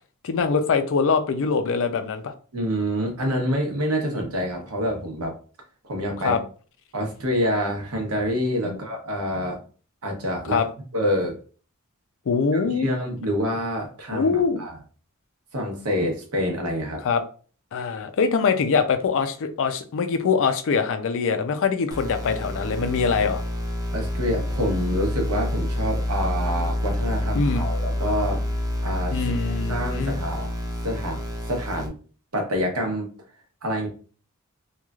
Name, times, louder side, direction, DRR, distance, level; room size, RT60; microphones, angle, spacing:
voice 1, 0.2-2.3 6.2-6.4 8.6-8.8 10.5-10.7 12.3-12.9 14.1-14.6 17.0-17.2 17.7-23.4 27.4-27.7 29.1-30.2, left 5 dB, 65° left, 0.4 m, -23 dB
voice 2, 2.5-5.3 5.8-6.4 6.9-9.6 10.0-10.6 10.9-11.4 12.5-14.8 15.5-17.0 23.9-28.4 28.8-29.2 29.7-30.5 30.8-31.2 31.5-31.9 32.3-33.1 33.6-33.9, equal, 80° right, 0.9 m, -27 dB
sound 1, 21.9-31.9, left 1 dB, 15° right, 0.5 m, -28 dB
3.1 x 2.3 x 2.3 m
head